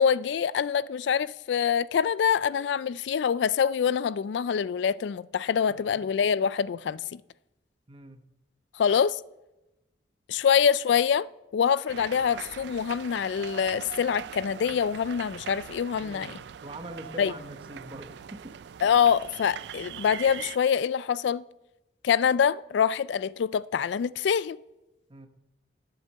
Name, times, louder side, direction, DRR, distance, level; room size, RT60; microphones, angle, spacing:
voice 1, 0.0-7.2 8.8-9.2 10.3-11.3 11.5-16.3 17.2-17.3 18.8-21.4 22.0-24.6, left 7 dB, 70° left, 0.3 m, -25 dB
voice 2, 5.7-6.0 7.9-8.2 16.0-16.4 16.6-18.5 25.1-25.3, right 1 dB, 30° right, 1.0 m, -44 dB
sound 1, 11.9-20.6, right 8 dB, 65° right, 0.3 m, -42 dB
12.0 x 7.8 x 6.7 m
head